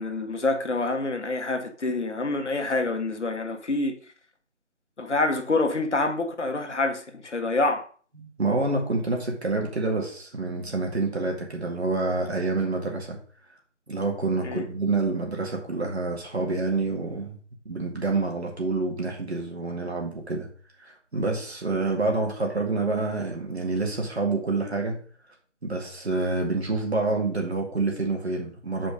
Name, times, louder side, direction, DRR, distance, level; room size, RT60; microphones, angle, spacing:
voice 1, 0.0-4.0 5.0-7.9 14.4-14.6, left 2 dB, 70° left, 1.5 m, -27 dB
voice 2, 8.2-13.2 13.9-17.4 17.7-20.5 20.8-25.0 25.6-28.9, right 3 dB, 60° right, 2.2 m, -27 dB
6.7 x 5.1 x 5.1 m
figure-of-eight pair, 175°, 36 cm